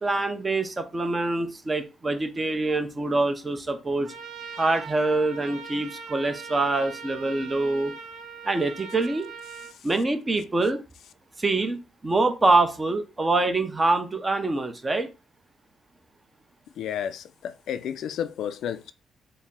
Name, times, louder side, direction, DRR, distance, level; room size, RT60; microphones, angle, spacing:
voice 1, 0.0-4.1 4.6-7.9 8.4-9.3 9.8-10.8 11.4-15.1, right 2 dB, 25° right, 0.7 m, -25 dB
Trumpet, 4.0-9.7, right 5 dB, 75° right, 0.5 m, -41 dB
voice 2, 16.8-18.9, left 9 dB, 75° left, 0.3 m, -32 dB
4.0 x 2.0 x 3.6 m
cardioid pair, 90°, 0 cm